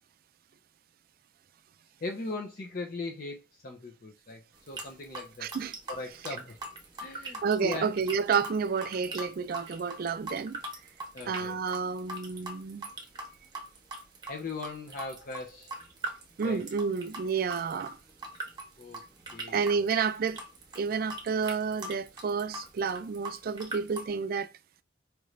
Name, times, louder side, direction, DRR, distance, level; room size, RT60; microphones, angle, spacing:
voice 1, 2.0-5.5 5.9-6.6 7.0-7.9 11.1-11.6 14.3-15.7 16.4-16.6 18.8-19.0 19.3-19.6, left 3 dB, 50° left, 0.6 m, -39 dB
sound 1, 4.5-24.1, right 2 dB, 25° right, 0.9 m, -41 dB
voice 2, 5.4-5.7 7.4-10.6 11.3-12.9 16.4-18.0 19.5-20.4 20.7-24.5, right 5 dB, 50° right, 0.3 m, -30 dB
4.5 x 2.6 x 3.1 m
head